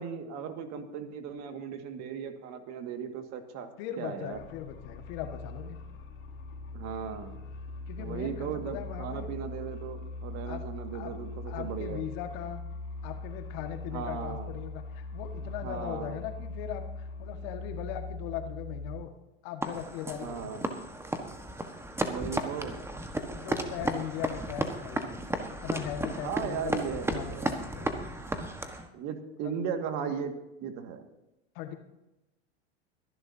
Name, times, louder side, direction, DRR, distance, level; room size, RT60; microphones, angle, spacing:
voice 1, 0.0-3.7 4.0-4.4 6.7-7.4 8.0-12.0 13.9-14.5 15.4-16.2 20.2-20.6 22.0-22.8 26.2-27.5 28.9-31.1, right 7 dB, 50° right, 6 dB, 2.0 m, -37 dB
voice 2, 3.8-5.8 7.9-9.3 10.5-10.6 10.9-11.1 11.5-12.6 13.0-19.1 19.4-20.7 23.3-25.1 25.5-28.1 29.4-29.5 31.6-31.7, left 10 dB, 60° left, 6 dB, 1.8 m, -39 dB
sound 1, 4.3-19.0, left 3 dB, 35° left, 3.6 m, -41 dB
sound 2, 19.6-28.9, right 1 dB, 5° right, 1.4 m, -34 dB
24.0 x 11.0 x 2.8 m, 0.94 s
hypercardioid pair, 95°, 34 cm